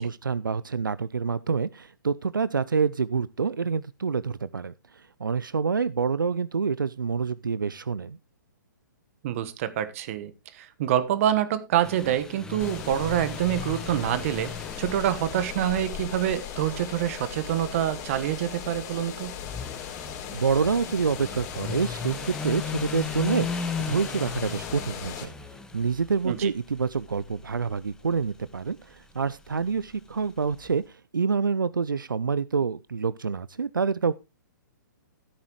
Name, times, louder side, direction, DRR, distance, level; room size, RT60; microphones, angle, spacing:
voice 1, 0.0-8.2 20.3-25.3 25.7-34.1, right 5 dB, 85° right, 0.5 m, -27 dB
voice 2, 9.2-19.3 26.2-26.5, right 11 dB, 45° right, 1.3 m, -26 dB
sound 1, 11.8-30.7, left 5 dB, 5° left, 1.3 m, -38 dB
sound 2, 12.6-25.3, left 8 dB, 30° left, 3.8 m, -38 dB
14.5 x 8.8 x 3.1 m
figure-of-eight pair, 125°, 11 cm